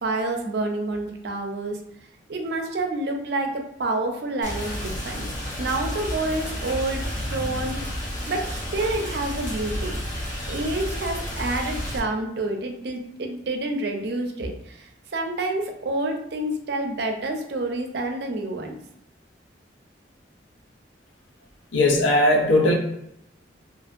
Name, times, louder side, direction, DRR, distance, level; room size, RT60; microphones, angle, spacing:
voice 1, 0.0-1.8 2.3-5.3 5.6-7.0 7.3-8.0 8.3-10.0 10.5-18.7, right 2 dB, 60° right, 3 dB, 0.5 m, -28 dB
Rain, 4.4-12.0, equal, 40° left, 0.8 m, -31 dB
voice 2, 21.7-22.7, left 1 dB, 85° left, 2 dB, 0.6 m, -18 dB
2.8 x 2.6 x 2.4 m, 0.80 s
head